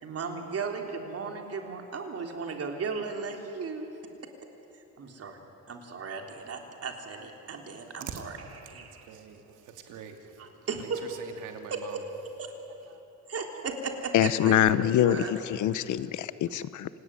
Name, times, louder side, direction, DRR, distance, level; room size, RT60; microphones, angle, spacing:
voice 1, 0.0-3.8 5.0-5.4 5.7-8.3 8.6-9.1 10.7-11.0 11.7-12.0 12.4-12.5 13.3-15.3, right 5 dB, 50° right, 3 dB, 3.6 m, -36 dB
voice 2, 7.4-12.0 12.5-13.0, right 7 dB, 85° right, 5 dB, 2.6 m, -46 dB
voice 3, 14.1-16.9, left 11 dB, 75° left, 15 dB, 1.0 m, -24 dB
26.5 x 19.0 x 10.0 m, 3.0 s
cardioid pair, 90°, 30 cm